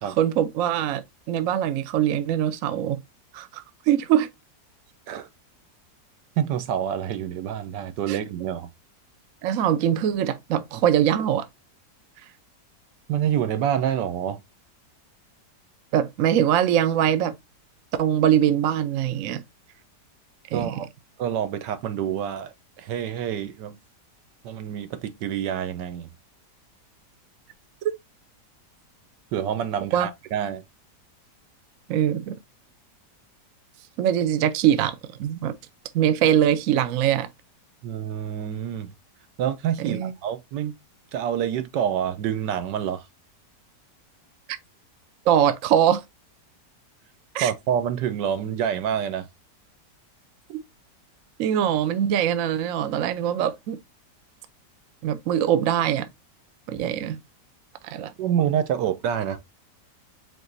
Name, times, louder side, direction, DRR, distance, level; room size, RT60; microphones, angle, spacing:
voice 1, 0.0-3.0 3.3-4.3 8.1-8.2 9.4-11.5 15.9-17.3 18.0-19.4 20.5-20.7 29.9-30.1 31.9-32.4 34.0-35.6 35.9-37.3 39.8-40.1 45.3-46.0 47.3-47.5 50.5-50.6 51.4-53.8 55.0-56.1 56.7-57.2 57.8-58.1, right 10 dB, 65° right, 0.9 m, -22 dB
voice 2, 6.4-8.7 13.1-14.4 20.5-20.9 21.2-23.8 24.4-26.1 29.3-30.6 37.8-38.9 39.4-40.7 41.1-43.0 47.4-49.3 58.2-59.4, right 9 dB, 80° right, 1.3 m, -27 dB
5.0 x 3.8 x 2.6 m
omnidirectional pair, 1.8 m